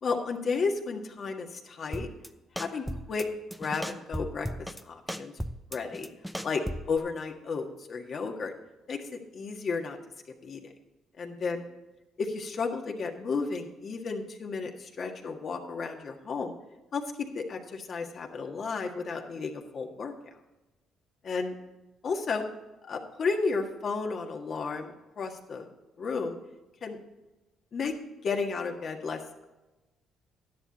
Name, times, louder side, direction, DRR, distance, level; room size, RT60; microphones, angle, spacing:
voice 1, 0.0-2.1 2.6-3.3 3.6-4.5 4.8-5.3 5.7-6.1 6.4-8.5 8.9-10.0 10.4-10.6 11.2-11.6 12.2-16.5 16.9-20.1 21.2-21.5 22.0-22.4 22.9-25.7 26.0-26.4 26.8-27.0 27.7-27.9 28.2-29.2, left 4 dB, 55° left, 2 dB, 1.7 m, -33 dB
sound 1, 1.9-2.3 2.6-3.2 3.5-4.8 5.1-7.0, equal, ahead, 0.7 m, -36 dB
11.5 x 10.5 x 4.2 m, 1.0 s
supercardioid pair, 75°, 0 cm